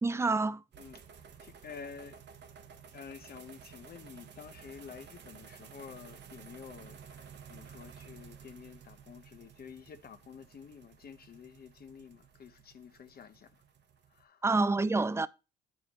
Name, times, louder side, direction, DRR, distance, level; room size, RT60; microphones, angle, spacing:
voice 1, 0.0-0.6 14.4-15.3, right 3 dB, 15° right, 0.4 m, -27 dB
sound 1, 0.7-14.2, right 7 dB, 60° right, 0.9 m, -53 dB
voice 2, 0.8-2.2 2.9-13.6 14.1-14.4, left 6 dB, 50° left, 0.9 m, -50 dB
9.0 x 4.9 x 2.9 m
cardioid pair, 90°, 20 cm